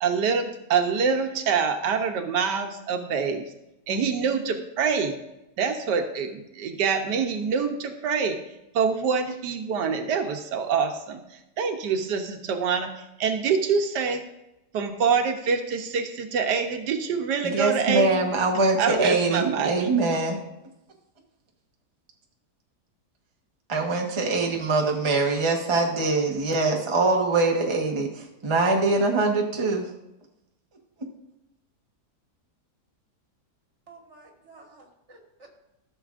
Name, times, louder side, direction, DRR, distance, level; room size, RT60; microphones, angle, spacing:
voice 1, 0.0-3.4 3.9-5.1 5.6-8.4 8.7-14.2 14.7-18.2 18.8-19.7, right 6 dB, 85° right, 5 dB, 1.4 m, -25 dB
voice 2, 17.4-20.4 23.7-29.9, right 3 dB, 20° right, 1 dB, 0.9 m, -23 dB
voice 3, 33.9-35.5, right 3 dB, 45° right, 1 dB, 1.9 m, -51 dB
14.0 x 6.8 x 2.5 m, 0.89 s
omnidirectional pair, 1.8 m